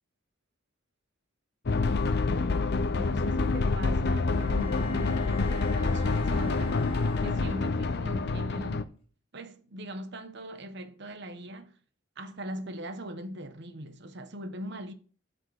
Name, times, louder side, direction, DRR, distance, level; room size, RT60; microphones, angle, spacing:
sound 1, 1.7-8.8, left 3 dB, 55° left, 0.6 m, -27 dB
voice 1, 1.7-6.9 7.2-9.0 9.3-11.8 12.2-14.9, equal, 60° right, 1.0 m, -41 dB
Bowed string instrument, 4.3-8.0, left 3 dB, 30° left, 1.8 m, -47 dB
12.5 x 4.4 x 4.8 m
head